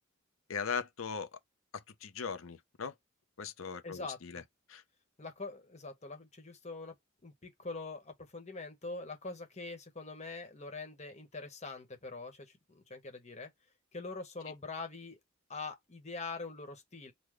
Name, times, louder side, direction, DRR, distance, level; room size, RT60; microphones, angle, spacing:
voice 1, 0.5-1.3 1.7-2.9 3.4-4.4 4.7-4.8, left 6 dB, 90° left, 0.7 m, -39 dB
voice 2, 3.8-4.4 5.2-6.9 7.2-13.5 13.9-15.2 15.5-17.1, left 3 dB, 35° left, 1.2 m, -44 dB
3.8 x 2.2 x 3.1 m
head